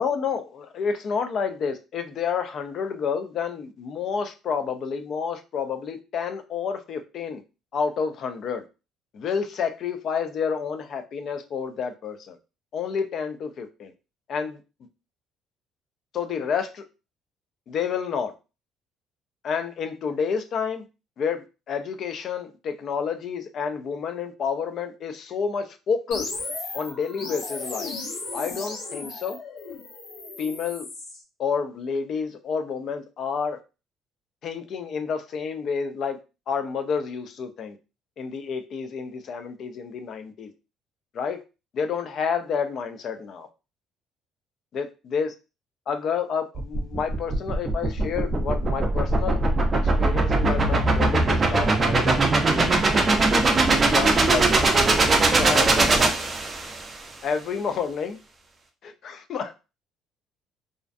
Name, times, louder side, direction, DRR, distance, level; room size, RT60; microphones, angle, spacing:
voice 1, 0.0-7.4 7.7-8.6 9.1-12.4 12.7-13.9 14.3-14.6 16.1-16.8 17.7-18.3 19.4-20.8 21.2-26.3 26.7-27.9 28.3-29.4 30.4-30.9 31.4-33.6 34.4-36.2 36.5-37.8 38.2-40.5 41.1-41.4 41.7-43.5 44.7-45.3 45.9-49.4 49.7-52.8 53.7-54.8 55.4-56.2 57.2-58.2 58.8-59.5, left 6 dB, 50° left, 0.4 m, -29 dB
sound 1, 26.1-31.2, left 3 dB, 70° left, 0.8 m, -35 dB
sound 2, 46.5-56.9, right 2 dB, 25° right, 0.4 m, -21 dB
2.4 x 2.1 x 2.5 m
cardioid pair, 135°, 0 cm